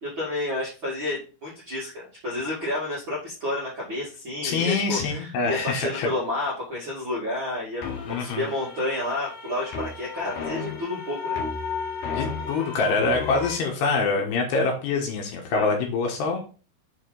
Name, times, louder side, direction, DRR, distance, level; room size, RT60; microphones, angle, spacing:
voice 1, 0.0-11.4 15.5-15.8, left 1 dB, 45° right, -9 dB, 1.6 m, -30 dB
voice 2, 4.4-6.1 8.1-8.4 12.0-16.4, left 4 dB, 70° left, 1 dB, 2.8 m, -25 dB
sound 1, 7.8-13.6, left 5 dB, 90° left, 1.8 m, -33 dB
6.8 x 5.0 x 4.0 m, 0.36 s
omnidirectional pair, 6.0 m